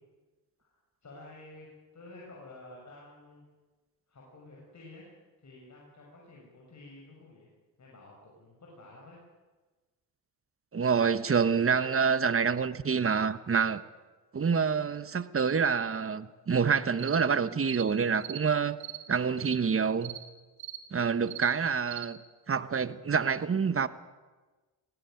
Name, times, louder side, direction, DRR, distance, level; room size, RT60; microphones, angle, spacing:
voice 1, 1.0-3.4 4.1-5.1 5.4-7.5 7.8-9.2, left 2 dB, 40° left, 6.6 m, -51 dB
voice 2, 10.7-13.8 14.3-18.8 19.1-20.2 20.9-22.2 22.5-23.9, right 6 dB, 30° right, 1.2 m, -27 dB
sound 1, 17.0-17.2 17.6-17.9 18.2-18.4 18.8-19.0 19.4-19.6 20.0-20.2 20.6-20.8 21.3-21.5 21.9-22.1, right 13 dB, 55° right, 3.4 m, -40 dB
18.5 x 18.0 x 9.2 m
cardioid pair, 70°, 42 cm